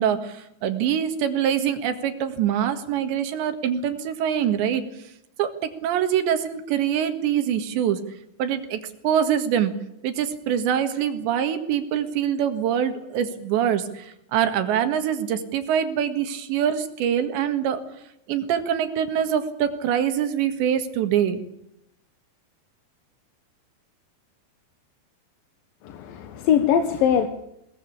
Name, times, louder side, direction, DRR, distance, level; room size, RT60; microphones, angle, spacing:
voice 1, 0.0-4.8 5.4-8.0 8.4-9.7 10.0-17.8 18.3-21.4, right 9 dB, 80° right, 8 dB, 4.0 m, -24 dB
voice 2, 25.8-27.3, left 8 dB, 65° left, 7 dB, 2.7 m, -21 dB
21.5 x 20.5 x 8.6 m, 0.78 s
omnidirectional pair, 5.1 m